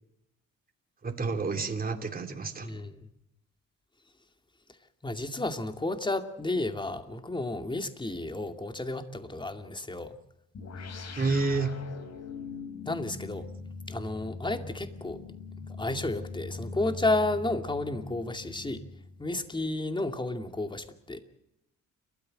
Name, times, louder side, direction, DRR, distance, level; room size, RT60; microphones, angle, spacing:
voice 1, 1.0-2.7 11.2-11.7, right 4 dB, 30° right, 4 dB, 2.9 m, -29 dB
voice 2, 2.6-3.1 5.0-10.2 10.8-10.9 12.9-13.5 13.9-15.2 15.8-18.8 19.2-21.2, left 2 dB, 15° left, 7 dB, 2.4 m, -32 dB
sound 1, 10.5-19.4, left 4 dB, 60° left, 4.2 m, -42 dB
29.5 x 13.5 x 7.7 m, 0.83 s
cardioid pair, 90°, 30 cm